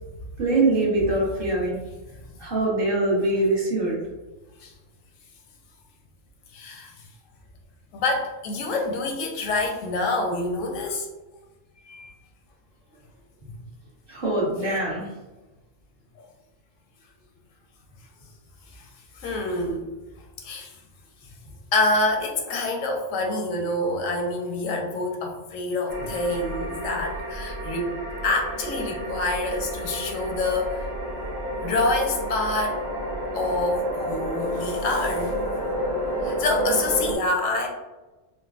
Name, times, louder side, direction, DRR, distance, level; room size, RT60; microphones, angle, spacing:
voice 1, 0.4-1.8 2.4-4.0 14.1-15.1, right 2 dB, 50° right, -7 dB, 1.2 m, -23 dB
voice 2, 6.5-6.9 7.9-11.1 11.9-12.1 16.2-16.3 18.7-18.8 19.2-19.9 20.4-20.7 21.7-27.9 28.2-30.8 31.6-32.8 33.3-35.3 36.2-37.7, left 2 dB, 85° left, 2 dB, 1.0 m, -26 dB
sound 1, 25.9-37.2, right 1 dB, 85° right, 1.2 m, -30 dB
3.7 x 2.1 x 2.4 m, 1.1 s
omnidirectional pair, 1.3 m